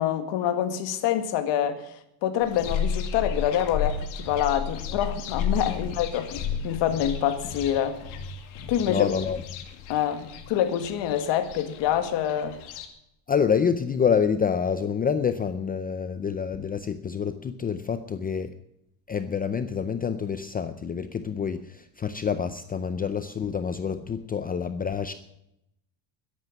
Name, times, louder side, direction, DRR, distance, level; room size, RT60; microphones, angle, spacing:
voice 1, 0.0-8.0 8.7-9.1 9.9-12.6, left 10 dB, 65° left, 2.0 m, -26 dB
sound 1, 2.4-12.9, left 7 dB, 85° left, 2.5 m, -33 dB
voice 2, 8.9-9.4 13.3-18.5 19.1-25.1, left 6 dB, 20° left, 0.5 m, -27 dB
13.5 x 10.5 x 7.2 m
cardioid pair, 150°, 47 cm